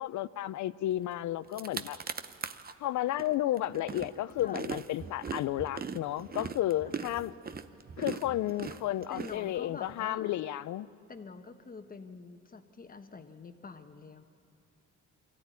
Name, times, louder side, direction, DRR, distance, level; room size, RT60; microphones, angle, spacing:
voice 1, 0.0-2.0 2.8-7.3 8.0-10.9, left 13 dB, 70° left, 0.6 m, -32 dB
sound 1, 1.1-1.2 1.4-2.7 3.2-9.9, right 6 dB, 30° right, 0.7 m, -40 dB
voice 2, 6.8-7.2 9.1-10.3 11.1-14.2, left 4 dB, 30° left, 1.3 m, -46 dB
23.0 x 14.0 x 9.4 m
cardioid pair, 90°, 30 cm